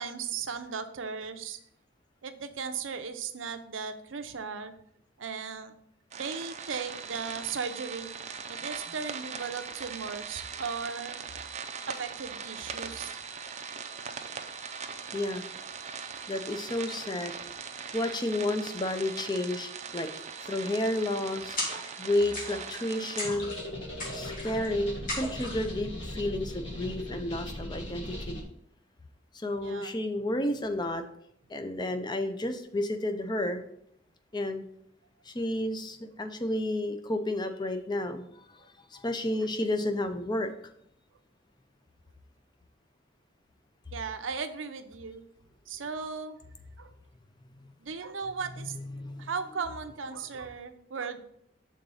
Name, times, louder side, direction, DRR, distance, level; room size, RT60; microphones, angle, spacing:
voice 1, 0.0-1.6 2.2-4.7 5.2-5.7 6.1-8.1 8.5-11.2 11.8-13.1 29.6-29.9 38.6-38.7 43.9-45.2 45.7-46.4 46.8-46.9 47.8-48.8 49.2-51.2, right 5 dB, 85° right, 9 dB, 0.6 m, -36 dB
sound 1, 6.1-23.3, right 6 dB, 35° right, 0.5 m, -40 dB
voice 2, 15.1-15.4 16.3-17.3 17.9-20.1 20.4-21.6 22.0-23.5 24.1-28.4 29.3-31.0 31.5-33.6 34.3-34.6 35.2-38.6 38.9-40.5 48.6-49.3, left 1 dB, 25° left, 8 dB, 0.6 m, -31 dB
sound 2, 21.6-22.0 22.3-22.8 23.2-23.6 24.0-24.7 25.1-25.7, left 1 dB, 45° left, 2.3 m, -36 dB
sound 3, 23.2-28.4, left 1 dB, 75° left, 1.7 m, -39 dB
6.5 x 3.9 x 5.5 m, 0.71 s
head